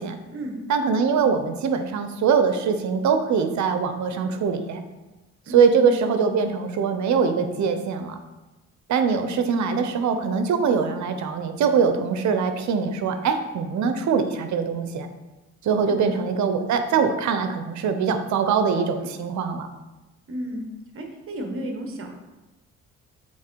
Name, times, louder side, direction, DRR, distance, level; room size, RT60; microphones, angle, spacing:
voice 1, 0.7-4.8 5.5-8.2 8.9-15.1 15.6-19.7, right 6 dB, 70° right, 8 dB, 0.8 m, -22 dB
voice 2, 5.5-5.9 15.8-16.2 20.3-20.6 20.9-22.2, equal, 45° right, 3 dB, 1.3 m, -33 dB
7.4 x 3.7 x 4.6 m, 1.1 s
cardioid pair, 90°, 30 cm